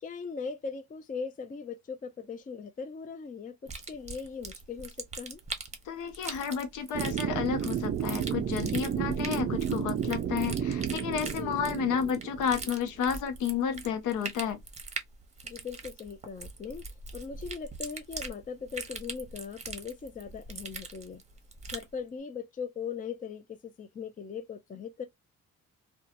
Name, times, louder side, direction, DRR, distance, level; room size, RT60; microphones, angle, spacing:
voice 1, 0.0-5.4 11.4-12.1 15.4-21.2 21.7-25.0, left 6 dB, 25° left, 0.5 m, -40 dB
sound 1, 3.7-21.9, right 4 dB, 20° right, 0.8 m, -42 dB
voice 2, 5.9-14.6, left 7 dB, 85° left, 0.7 m, -31 dB
sound 2, 6.9-12.9, right 9 dB, 40° right, 0.4 m, -32 dB
2.7 x 2.3 x 2.5 m
cardioid pair, 90°, 30 cm